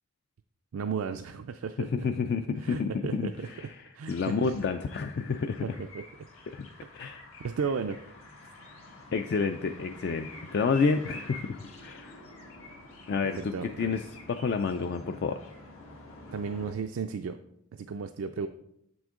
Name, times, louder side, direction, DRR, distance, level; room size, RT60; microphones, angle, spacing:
voice 1, 0.7-2.1 2.6-3.5 3.9-4.5 5.6-6.0 7.4-8.0 13.2-14.0 16.3-17.4 17.7-18.5, right 5 dB, 75° right, 7 dB, 0.4 m, -34 dB
voice 2, 1.9-5.6 6.5-6.7 6.9-7.2 9.1-12.2 13.1-14.0 14.3-15.4, left 5 dB, 50° left, 7 dB, 0.3 m, -30 dB
sound 1, 4.0-16.7, left 2 dB, 80° left, 1.6 m, -48 dB
7.6 x 6.2 x 3.7 m, 0.76 s
head